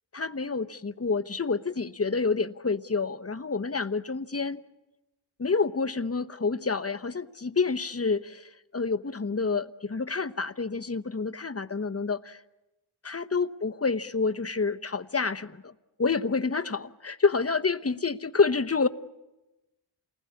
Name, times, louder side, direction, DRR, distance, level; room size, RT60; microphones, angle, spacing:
voice 1, 0.1-4.6 5.4-12.4 13.0-15.7 16.0-18.9, left 4 dB, 30° left, 1.0 m, -28 dB
28.5 x 20.5 x 8.5 m
wide cardioid pair, 45°, 48 cm